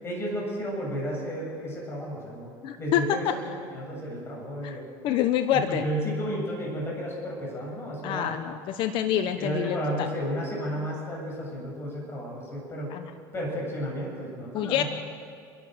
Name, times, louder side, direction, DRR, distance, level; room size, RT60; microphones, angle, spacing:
voice 1, 0.0-2.5 2.8-3.5 3.7-4.9 5.5-8.4 9.4-12.9 13.3-14.9, equal, 25° left, -2 dB, 7.7 m, -32 dB
voice 2, 2.6-3.2 4.6-5.9 8.0-10.1 12.9-13.1 14.5-14.8, left 10 dB, 55° left, 9 dB, 1.0 m, -27 dB
29.5 x 12.0 x 8.0 m, 2.3 s
supercardioid pair, 115°, 10 cm